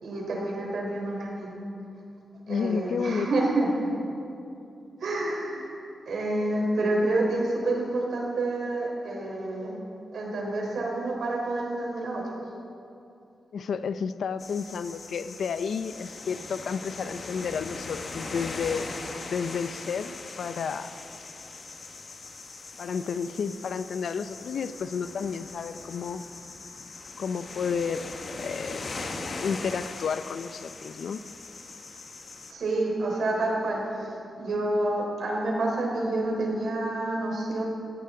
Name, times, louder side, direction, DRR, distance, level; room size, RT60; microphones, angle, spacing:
voice 1, 0.0-1.5 2.5-3.9 5.0-5.7 6.1-9.8 10.1-12.2 32.5-37.6, right 2 dB, 75° right, -2 dB, 4.0 m, -28 dB
voice 2, 2.5-3.3 13.5-18.9 19.2-20.9 22.8-26.2 27.2-28.9 29.3-31.2, left 6 dB, 75° left, 12 dB, 0.5 m, -31 dB
sound 1, 14.4-32.5, left 3 dB, 50° left, 1.3 m, -40 dB
18.0 x 15.5 x 3.8 m, 2.7 s
wide cardioid pair, 125°, 0 cm